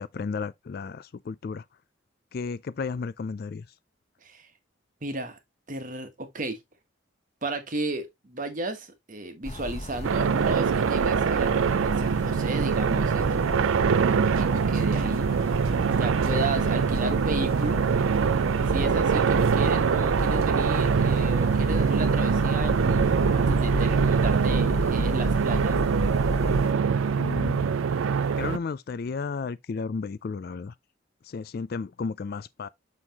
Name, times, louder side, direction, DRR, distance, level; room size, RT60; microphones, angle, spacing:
voice 1, 0.0-1.6 2.3-3.7 27.2-27.7 28.4-30.7 31.2-32.7, left 4 dB, 50° left, 0.3 m, -33 dB
voice 2, 5.0-5.4 5.7-6.6 7.4-13.5 13.9-15.3 16.0-17.8 18.7-25.8, right 2 dB, 40° right, 1.2 m, -34 dB
sound 1, 9.4-26.7, left 1 dB, 35° left, 0.8 m, -33 dB
sound 2, 10.0-28.6, right 6 dB, 80° right, 0.4 m, -24 dB
6.3 x 5.6 x 2.9 m
head